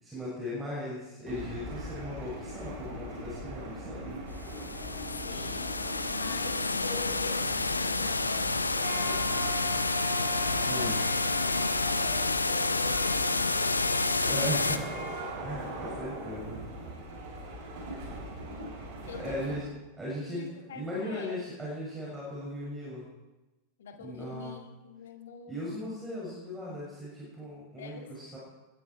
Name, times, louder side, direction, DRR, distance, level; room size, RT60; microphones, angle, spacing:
voice 1, 0.0-4.2 10.6-11.0 14.1-15.0 15.4-16.6 19.2-19.6 20.0-23.1 24.0-24.6 25.5-28.4, equal, 10° right, -6 dB, 6.8 m, -38 dB
sound 1, 1.3-19.6, right 1 dB, 45° right, 7.1 m, -39 dB
sound 2, 4.4-14.8, left 3 dB, 80° left, 0.8 m, -29 dB
voice 2, 5.2-9.6 10.7-13.6 19.1-19.6 20.2-21.4 23.8-25.9 27.8-28.4, left 6 dB, 60° left, 5 dB, 2.1 m, -45 dB
21.0 x 14.0 x 4.7 m, 1.1 s
figure-of-eight pair, 90°, 0 cm